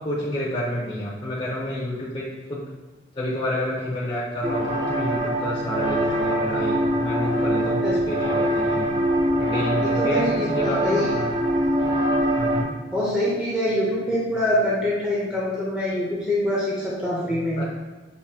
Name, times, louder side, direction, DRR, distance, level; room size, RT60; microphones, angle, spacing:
voice 1, 0.0-2.6 3.1-8.9 9.4-11.3 12.3-12.7 17.6-17.7, left 1 dB, 30° left, -6 dB, 0.8 m, -29 dB
sound 1, 4.4-12.6, right 1 dB, 35° right, 0.9 m, -23 dB
voice 2, 9.8-11.1 12.9-17.6, left 1 dB, 5° right, -7 dB, 0.8 m, -24 dB
6.8 x 2.7 x 2.8 m, 1.3 s
head